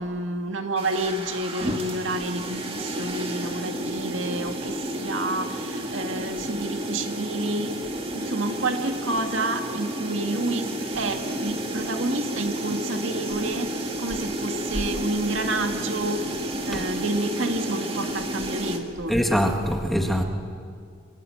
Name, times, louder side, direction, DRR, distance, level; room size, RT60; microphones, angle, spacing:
voice 1, 0.0-7.8 8.1-13.7 14.0-16.3 16.7-19.2, right 2 dB, 70° right, 5 dB, 2.0 m, -29 dB
sound 1, 0.8-18.8, right 1 dB, 25° right, 2.1 m, -31 dB
voice 2, 19.1-20.2, equal, ahead, 3 dB, 1.7 m, -23 dB
26.5 x 24.0 x 7.9 m, 2.2 s
head